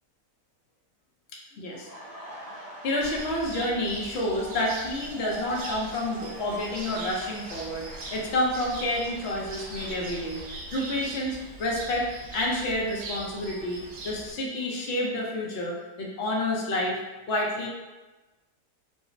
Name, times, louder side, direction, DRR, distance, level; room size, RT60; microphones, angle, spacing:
voice 1, 1.6-1.9 2.8-7.9 8.1-17.0 17.3-17.7, left 1 dB, 60° left, -2 dB, 0.7 m, -29 dB
Laughter, 1.7-11.5 11.9-13.9, right 2 dB, 70° right, 1.8 m, -45 dB
Cricket, 3.0-14.3, right 2 dB, 90° right, 1.5 m, -41 dB
5.0 x 2.0 x 2.5 m, 1.2 s
omnidirectional pair, 1.9 m